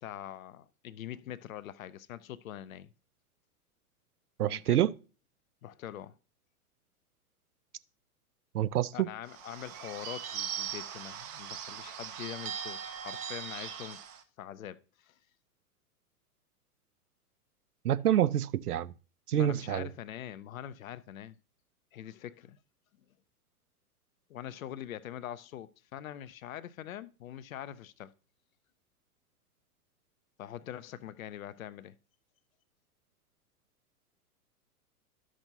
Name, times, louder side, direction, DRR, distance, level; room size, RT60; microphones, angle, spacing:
voice 1, 0.0-2.9 4.4-4.9 5.6-6.2 8.9-14.0 14.4-15.1 19.3-21.4 21.9-22.6 24.3-28.1 30.4-31.9, left 11 dB, 65° left, 0.6 m, -43 dB
voice 2, 4.4-4.9 8.5-9.1 17.8-18.9 19.3-19.9, right 11 dB, 75° right, 0.5 m, -27 dB
Bird / Bell, 9.3-14.2, right 9 dB, 30° right, 0.8 m, -40 dB
12.0 x 6.2 x 2.7 m
figure-of-eight pair, 100°, 45 cm